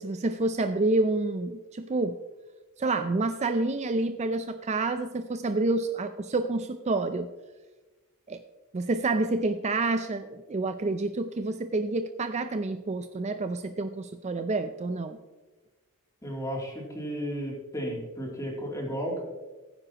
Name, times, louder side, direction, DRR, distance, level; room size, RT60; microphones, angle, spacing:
voice 1, 0.0-2.2 2.8-7.3 8.3-8.4 8.7-15.2, right 2 dB, 30° right, 9 dB, 0.4 m, -28 dB
voice 2, 16.2-19.2, equal, 15° left, -1 dB, 2.9 m, -33 dB
16.5 x 9.7 x 2.9 m, 1.2 s
head